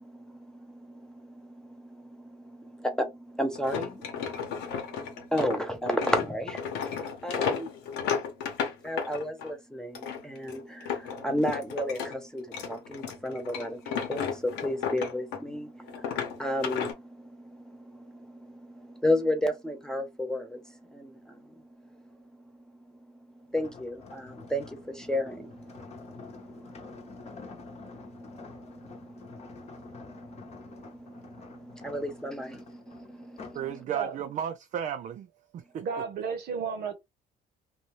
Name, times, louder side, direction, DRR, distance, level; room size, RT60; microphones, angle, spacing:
voice 1, 0.0-7.7 8.8-20.6 20.9-21.5 23.5-33.6, left 1 dB, 5° left, 0.6 m, -34 dB
sound 1, 3.5-9.5 9.9-12.1 12.4-15.6 15.9-16.9, left 7 dB, 90° left, 0.9 m, -33 dB
sound 2, 23.5-33.7 34.2-34.4, left 5 dB, 40° left, 0.9 m, -49 dB
voice 2, 33.5-35.3 35.5-35.9, right 9 dB, 45° right, 0.4 m, -33 dB
voice 3, 35.8-36.9, right 6 dB, 70° right, 0.8 m, -33 dB
2.7 x 2.2 x 3.0 m
cardioid pair, 110°, 17 cm